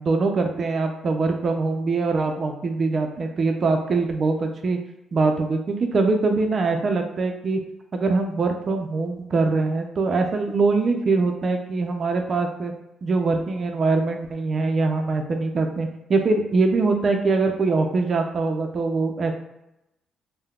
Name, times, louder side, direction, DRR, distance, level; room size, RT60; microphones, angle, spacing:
voice 1, 0.0-4.8 5.1-7.6 7.9-12.7 13.0-19.3, right 3 dB, 45° right, 4 dB, 0.4 m, -23 dB
3.5 x 2.1 x 2.3 m, 0.86 s
cardioid pair, 90°, 0 cm